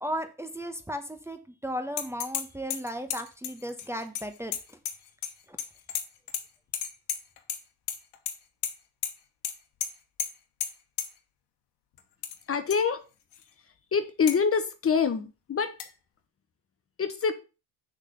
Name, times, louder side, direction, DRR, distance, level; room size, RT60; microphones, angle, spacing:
voice 1, 0.0-4.5, equal, 5° right, 1.0 m, -35 dB
sound 1, 2.0-2.4 2.7-5.3 5.6-6.4 6.7-7.6 7.9-8.3 8.6-8.7 9.0-9.1 9.4-9.5 9.8-9.9 10.2-10.3 10.6-10.7 11.0-11.1 12.0-12.4 12.7-12.8 13.3-13.4 14.3-14.4 15.8-15.9, left 9 dB, 60° left, 1.3 m, -32 dB
voice 2, 12.5-13.0 13.9-15.8 17.0-17.3, left 6 dB, 30° left, 1.0 m, -25 dB
6.4 x 3.9 x 6.3 m
supercardioid pair, 75°, 45 cm